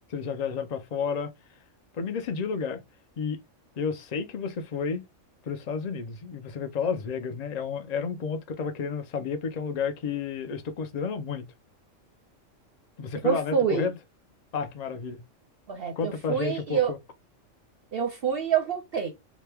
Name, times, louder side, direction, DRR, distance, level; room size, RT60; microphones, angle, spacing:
voice 1, 0.1-1.3 1.9-2.8 3.2-3.4 3.8-5.0 5.5-11.5 13.0-13.9 14.5-15.2 16.0-17.0, left 5 dB, 50° left, 0.5 m, -31 dB
voice 2, 13.2-14.0 15.7-16.9 17.9-19.1, right 7 dB, 60° right, 0.7 m, -27 dB
3.0 x 2.2 x 3.3 m
omnidirectional pair, 1.3 m